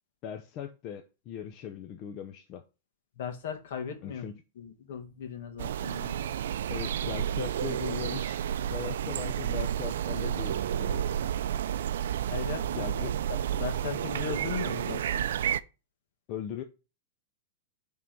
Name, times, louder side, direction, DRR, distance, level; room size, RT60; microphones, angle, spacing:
voice 1, 0.2-2.6 4.0-4.4 6.7-11.0 12.7-13.2 16.3-16.6, left 9 dB, 30° left, 0.6 m, -39 dB
voice 2, 3.2-4.2 4.6-6.3 12.3-15.2, left 7 dB, 60° left, 1.7 m, -38 dB
sound 1, 5.6-15.6, right 10 dB, 75° right, 0.4 m, -31 dB
7.6 x 3.7 x 5.3 m
supercardioid pair, 170°, 0 cm